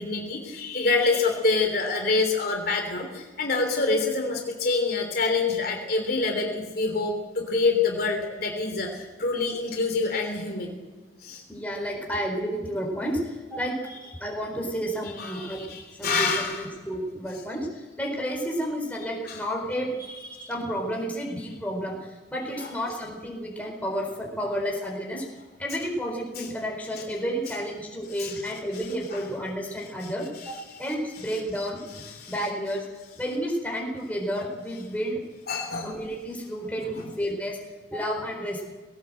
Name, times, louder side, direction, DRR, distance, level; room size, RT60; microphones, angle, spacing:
voice 1, 0.0-10.7 11.2-11.4 15.2-16.6 19.3-19.4 20.0-20.5 22.6-22.7 26.4-26.5 28.2-28.5 29.1-29.2 32.1-32.3 35.5-35.9, left 3 dB, 55° left, 3 dB, 3.3 m, -26 dB
voice 2, 11.5-13.8 14.2-15.6 15.9-19.9 20.5-25.3 25.6-32.9 33.2-35.2 35.8-37.6 37.9-38.7, equal, 10° left, 0 dB, 4.5 m, -31 dB
19.0 x 18.0 x 7.8 m, 1.3 s
head